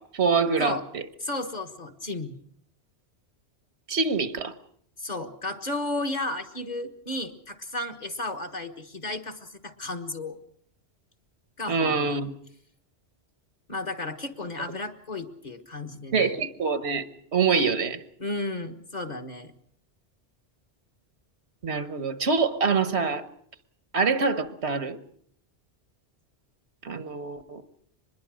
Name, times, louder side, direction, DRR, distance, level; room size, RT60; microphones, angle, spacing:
voice 1, 0.1-1.0 3.9-4.5 11.7-12.3 16.1-17.0 17.3-18.0 21.6-23.2 23.9-25.0 26.8-27.6, right 5 dB, 75° right, 12 dB, 1.5 m, -25 dB
voice 2, 1.2-2.4 5.0-10.4 11.6-12.2 13.7-16.4 18.2-19.5, left 2 dB, 40° left, 5 dB, 1.7 m, -33 dB
24.5 x 21.0 x 6.3 m, 0.66 s
omnidirectional pair, 1.1 m